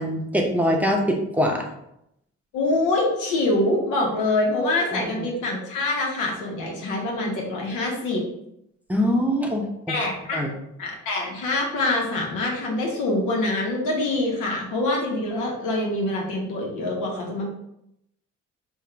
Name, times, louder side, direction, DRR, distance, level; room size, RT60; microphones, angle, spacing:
voice 1, 0.0-1.7 4.9-5.3 8.9-10.0 10.3-10.5, equal, 5° right, 1 dB, 0.7 m, -23 dB
voice 2, 2.5-8.2 9.9-10.5 10.8-17.5, left 2 dB, 90° left, 0 dB, 1.2 m, -25 dB
3.6 x 2.5 x 4.5 m, 0.80 s
cardioid pair, 90°, 30 cm